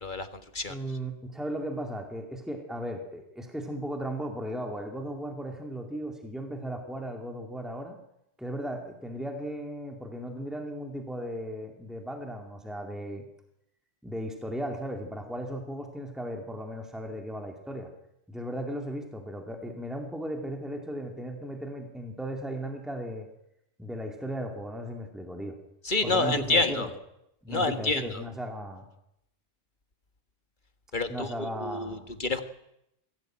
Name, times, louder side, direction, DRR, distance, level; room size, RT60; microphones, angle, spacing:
voice 1, 0.7-8.0 8.4-13.3 14.0-17.9 18.3-23.3 23.8-25.6 26.0-26.9 27.4-28.9 31.1-32.2, equal, ahead, 3 dB, 2.5 m, -36 dB
voice 2, 25.8-26.9 27.5-28.2 30.9-31.3 31.6-32.4, left 3 dB, 45° left, 8 dB, 1.8 m, -28 dB
22.5 x 17.0 x 9.1 m, 0.82 s
omnidirectional pair, 1.2 m